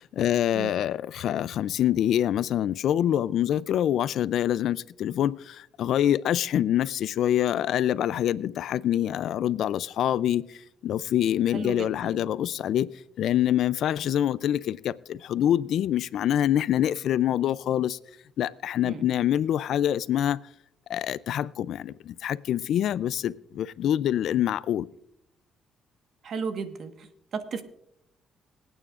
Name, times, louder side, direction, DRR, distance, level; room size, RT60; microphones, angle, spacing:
voice 1, 0.0-12.9 13.2-18.0 18.4-20.4 20.9-24.9, left 11 dB, 75° left, 0.4 m, -25 dB
voice 2, 11.5-12.2 18.8-19.1 26.2-27.1 27.3-27.6, right 5 dB, 60° right, 1.3 m, -34 dB
26.0 x 8.9 x 2.5 m
cardioid pair, 90°, 0 cm